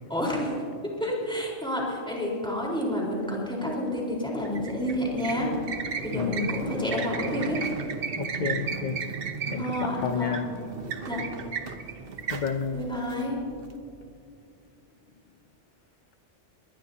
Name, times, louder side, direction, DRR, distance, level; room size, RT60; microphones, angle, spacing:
voice 1, 0.1-0.6 1.0-5.5 6.0-7.6 9.6-10.4 11.1-11.2 12.7-13.4, left 1 dB, 5° left, -4 dB, 4.3 m, -29 dB
sound 1, 4.4-13.7, right 5 dB, 50° right, 1.1 m, -35 dB
voice 2, 6.1-6.4 8.1-9.0 9.5-10.5 12.3-12.9, left 6 dB, 50° left, 7 dB, 0.7 m, -30 dB
22.0 x 20.5 x 2.8 m, 2.5 s
omnidirectional pair, 1.3 m